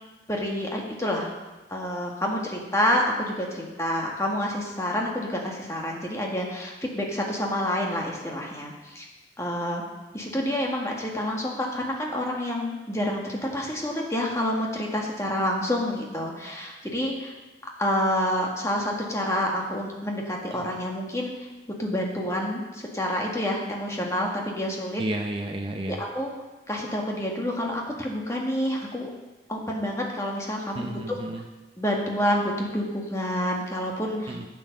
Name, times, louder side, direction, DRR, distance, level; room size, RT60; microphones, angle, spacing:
voice 1, 0.3-1.3 1.7-9.0 9.4-9.8 10.1-17.3 17.8-21.3 21.8-25.0 25.9-26.3 26.7-29.1 29.5-31.2 31.8-34.4, left 1 dB, 15° left, -1 dB, 1.7 m, -28 dB
voice 2, 25.0-26.0 30.7-31.5 34.3-34.5, right 1 dB, 30° right, 3 dB, 0.7 m, -32 dB
11.0 x 7.7 x 6.6 m, 1.2 s
head